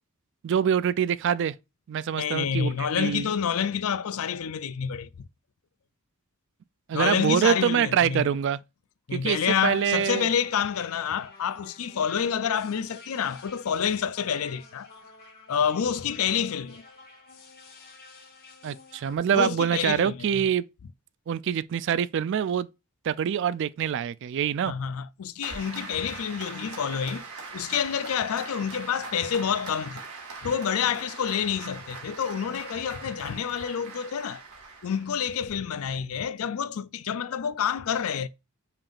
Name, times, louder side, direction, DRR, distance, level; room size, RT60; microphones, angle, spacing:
voice 1, 0.4-1.6 1.9-3.3 6.9-8.6 9.1-10.3 18.6-20.6 21.3-22.7 23.0-24.7, right 8 dB, 55° right, 0.3 m, -25 dB
voice 2, 2.2-5.3 6.9-8.3 9.1-14.9 15.5-16.8 19.3-20.4 24.6-27.3 27.5-30.0 30.4-34.4 34.8-38.3, left 7 dB, 70° left, 0.4 m, -28 dB
sound 1, 9.7-19.2, left 3 dB, 45° left, 1.5 m, -51 dB
Applause, 25.4-35.5, right 4 dB, 80° right, 1.6 m, -42 dB
5.6 x 3.5 x 2.5 m
head